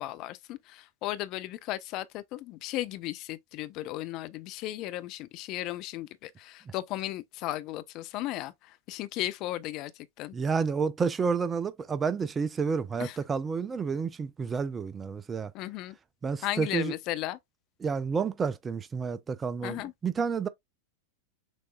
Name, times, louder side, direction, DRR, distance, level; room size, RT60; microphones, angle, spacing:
voice 1, 0.0-10.4 13.0-13.2 15.5-16.0 16.4-17.4 19.6-19.9, left 15 dB, 40° left, 0.5 m, -35 dB
voice 2, 10.3-15.5 16.2-16.9 17.8-20.5, right 5 dB, 20° right, 0.5 m, -30 dB
6.3 x 3.4 x 2.3 m
figure-of-eight pair, 90°, 0 cm